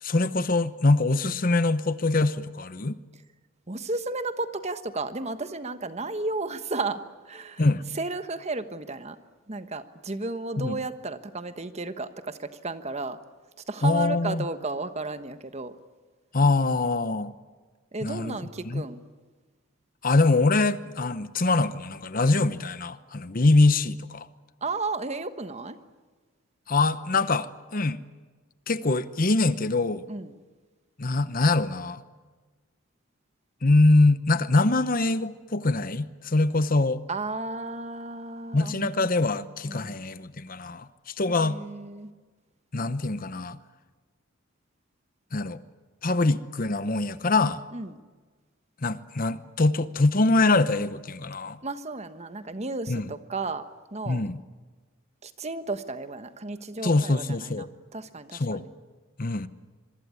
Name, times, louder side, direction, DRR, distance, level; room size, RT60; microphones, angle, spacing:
voice 1, 0.0-3.0 7.6-7.8 10.6-10.8 13.8-14.5 16.3-17.3 18.0-18.4 18.6-18.8 20.0-24.3 26.7-28.0 28.7-30.1 31.0-32.0 33.6-37.0 38.5-41.6 42.7-43.6 45.3-45.6 46.0-47.6 48.8-51.6 52.9-53.1 54.1-54.4 56.8-57.7 58.3-58.6 59.2-59.5, left 2 dB, 40° left, 14 dB, 0.9 m, -23 dB
voice 2, 3.7-7.6 7.9-9.2 9.5-13.2 13.7-15.7 17.9-19.0 24.6-25.8 30.1-30.4 37.1-39.9 41.3-42.1 47.7-48.0 51.6-53.6 53.9-54.2 55.2-57.7 57.9-58.7, right 3 dB, 30° right, 10 dB, 1.3 m, -33 dB
26.0 x 23.0 x 9.7 m, 1.4 s
head